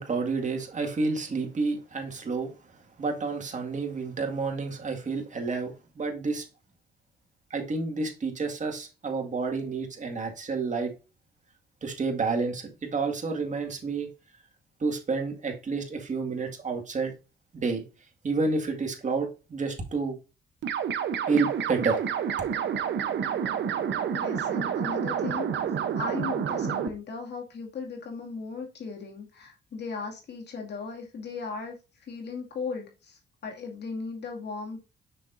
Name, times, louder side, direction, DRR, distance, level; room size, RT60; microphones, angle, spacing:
voice 1, 0.0-2.5 3.0-6.5 7.5-10.9 11.8-14.1 14.8-17.1 17.5-17.8 18.2-20.2 21.3-22.0, right 4 dB, 40° right, 1.9 m, -29 dB
sound 1, 20.6-26.9, right 8 dB, 65° right, 0.9 m, -29 dB
voice 2, 24.1-25.5 26.0-34.9, left 4 dB, 60° left, 2.3 m, -37 dB
6.7 x 6.0 x 2.6 m
cardioid pair, 90°, 20 cm